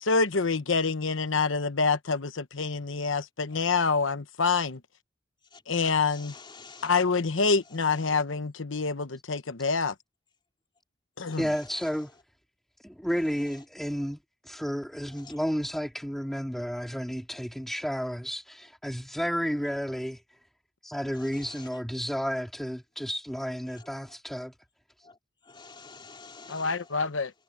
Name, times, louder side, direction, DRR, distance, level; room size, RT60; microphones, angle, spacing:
voice 1, 0.0-4.8 5.7-6.3 6.8-9.9 11.2-11.4 26.5-27.3, left 4 dB, 90° left, 1.1 m, -26 dB
voice 2, 6.1-6.9 7.9-8.0 11.2-11.4 15.2-15.4 21.2-21.7 23.8-23.9 25.0-25.1 25.5-26.9, left 4 dB, 25° left, 3.9 m, -49 dB
voice 3, 11.4-12.1 12.8-20.2 20.8-24.5, equal, ahead, 2.3 m, -32 dB
head